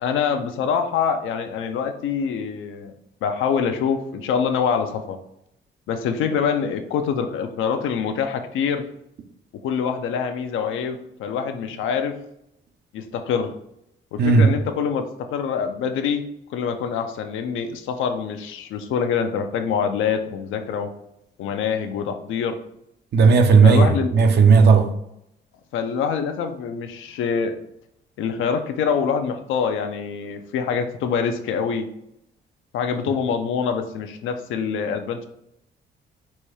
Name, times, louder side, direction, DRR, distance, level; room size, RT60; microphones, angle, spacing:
voice 1, 0.0-2.9 3.2-5.2 5.9-8.8 9.6-12.2 12.9-13.5 14.1-15.0 15.3-16.2 16.5-20.9 21.4-22.6 23.6-24.1 25.7-27.5 28.2-31.9 32.7-35.3, left 6 dB, 85° left, 0.5 m, -25 dB
voice 2, 14.2-14.5 23.1-24.9, right 5 dB, 55° right, 0.6 m, -14 dB
4.2 x 2.3 x 4.7 m
cardioid pair, 90°, 20 cm